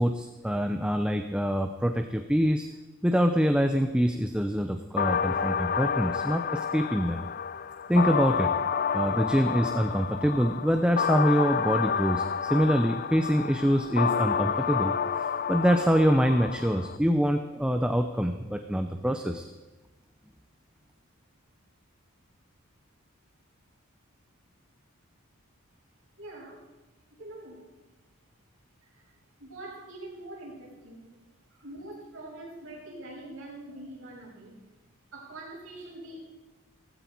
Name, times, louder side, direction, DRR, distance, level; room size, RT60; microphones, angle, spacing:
voice 1, 0.0-2.7 3.0-7.2 7.9-8.5 8.9-19.5, equal, 5° right, 6 dB, 0.7 m, -25 dB
sound 1, 5.0-17.0, left 7 dB, 45° left, 0.4 m, -29 dB
voice 2, 26.2-26.6 27.2-27.6 28.9-29.1 29.4-31.1 31.6-34.6 35.1-36.2, right 1 dB, 65° right, -3 dB, 6.9 m, -44 dB
18.0 x 15.5 x 4.6 m, 1.1 s
head